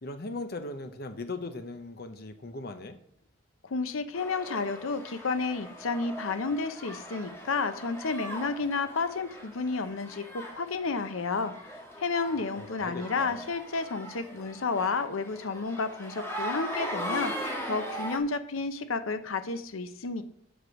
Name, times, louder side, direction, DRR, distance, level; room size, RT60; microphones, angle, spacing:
voice 1, 0.0-3.0 12.6-13.4, left 2 dB, 50° left, 8 dB, 0.7 m, -38 dB
voice 2, 3.6-11.5 12.0-20.2, left 4 dB, 90° left, 10 dB, 0.8 m, -31 dB
sound 1, 4.2-18.2, equal, 10° left, 1.4 m, -40 dB
8.1 x 6.2 x 6.2 m, 0.67 s
head